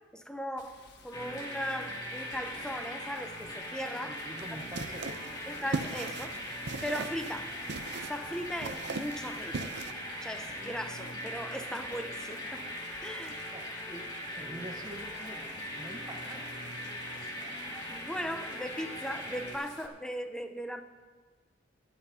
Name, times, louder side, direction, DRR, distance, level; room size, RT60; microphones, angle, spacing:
voice 1, 0.1-4.2 5.5-6.4 6.8-7.5 8.1-9.7 10.2-12.6 13.0-13.5 13.9-14.0 17.9-20.8, equal, 5° left, 7 dB, 0.7 m, -38 dB
Rain, 0.6-19.9, left 4 dB, 60° left, 1.3 m, -56 dB
sound 1, 1.1-19.6, equal, 20° left, 1.9 m, -40 dB
voice 2, 4.0-5.4 13.5-16.6, equal, 20° right, 2 dB, 1.1 m, -46 dB
sound 2, 4.4-9.9, right 3 dB, 60° right, 0.6 m, -40 dB
21.5 x 11.5 x 2.8 m, 1.4 s
head